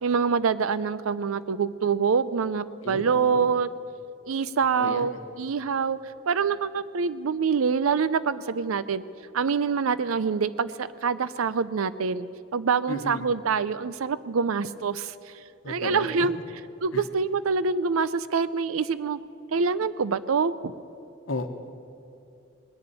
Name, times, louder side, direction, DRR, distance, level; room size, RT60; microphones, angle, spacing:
voice 1, 0.0-3.7 4.3-6.0 6.3-9.0 9.3-12.3 12.5-15.1 15.7-16.4 16.8-19.2 19.5-20.7, right 5 dB, 85° right, 16 dB, 0.5 m, -25 dB
voice 2, 2.8-3.5 4.8-5.2 12.9-13.3 15.6-16.1 16.9-17.0 21.3-21.5, left 2 dB, 70° left, 8 dB, 1.1 m, -34 dB
20.5 x 6.9 x 8.9 m, 2.6 s
head